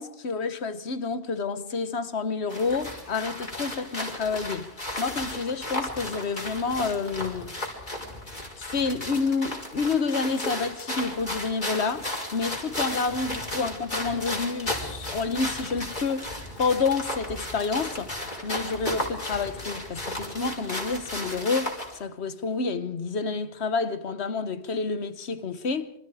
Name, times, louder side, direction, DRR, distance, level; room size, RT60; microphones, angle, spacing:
voice 1, 0.0-4.7 5.0-7.5 8.6-16.3 16.6-25.9, left 4 dB, 85° left, 1.5 m, -29 dB
sound 1, 2.5-22.0, left 1 dB, 45° left, 4.9 m, -34 dB
27.0 x 25.0 x 5.0 m
omnidirectional pair, 1.1 m